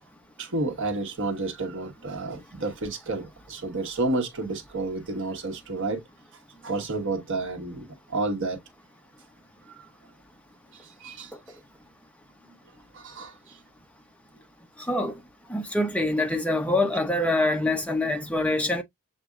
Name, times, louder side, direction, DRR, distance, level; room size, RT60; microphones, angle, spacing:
voice 1, 0.4-6.0 6.6-8.6 9.7-9.9 10.7-11.3 12.9-13.6, right 2 dB, 55° right, 1.2 m, -31 dB
voice 2, 14.9-15.2 15.5-18.8, left 1 dB, 5° left, 0.7 m, -25 dB
7.3 x 2.6 x 2.3 m
head